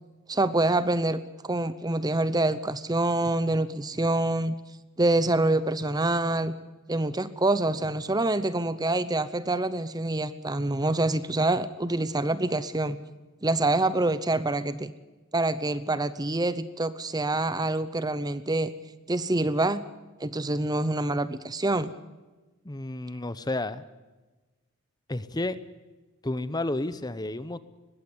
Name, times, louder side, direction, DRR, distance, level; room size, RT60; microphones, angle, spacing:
voice 1, 0.3-4.5 5.0-6.5 6.9-13.0 13.4-14.9 15.3-18.7 19.1-19.8 20.2-21.9, right 2 dB, 20° right, 14 dB, 0.8 m, -26 dB
voice 2, 22.6-23.8 25.1-25.6 26.2-27.6, left 2 dB, 20° left, 14 dB, 0.8 m, -31 dB
21.0 x 16.0 x 9.7 m, 1.2 s
head